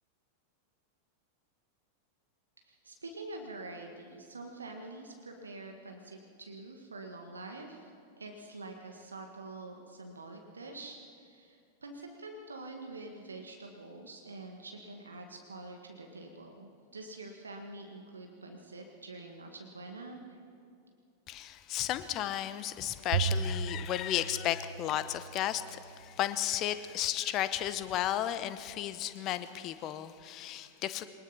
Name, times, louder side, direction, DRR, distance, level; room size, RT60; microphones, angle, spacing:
voice 1, 2.6-20.4, right 2 dB, 75° right, 3 dB, 1.7 m, -46 dB
voice 2, 21.3-31.0, left 12 dB, 35° left, 13 dB, 1.0 m, -34 dB
Bowed string instrument, 23.1-25.7, right 5 dB, 55° right, 1.2 m, -35 dB
22.5 x 20.5 x 5.8 m, 2.5 s
figure-of-eight pair, 90°, 0 cm